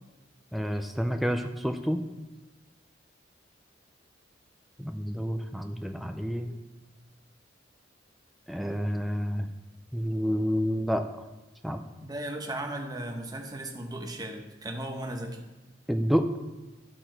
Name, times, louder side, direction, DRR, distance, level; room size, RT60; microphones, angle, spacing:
voice 1, 0.5-2.0 4.8-6.6 8.5-9.5 9.9-11.0 11.6-11.8 15.9-16.3, equal, ahead, 5 dB, 0.3 m, -29 dB
voice 2, 12.0-15.5, right 1 dB, 20° right, 3 dB, 0.9 m, -36 dB
12.0 x 4.3 x 4.5 m, 1.1 s
head